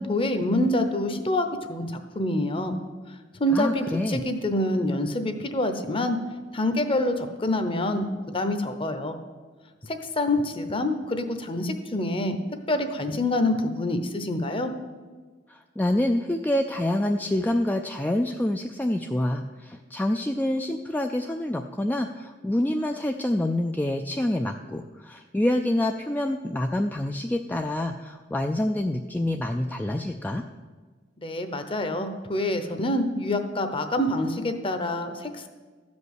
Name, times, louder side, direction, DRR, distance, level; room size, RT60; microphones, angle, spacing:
voice 1, 0.0-2.8 3.4-6.2 6.5-9.2 9.9-12.4 12.7-14.7 31.2-35.5, left 1 dB, 30° left, 8 dB, 0.9 m, -26 dB
voice 2, 3.5-4.2 15.5-30.4, left 1 dB, 10° left, 4 dB, 0.3 m, -27 dB
13.5 x 5.3 x 8.0 m, 1.4 s
head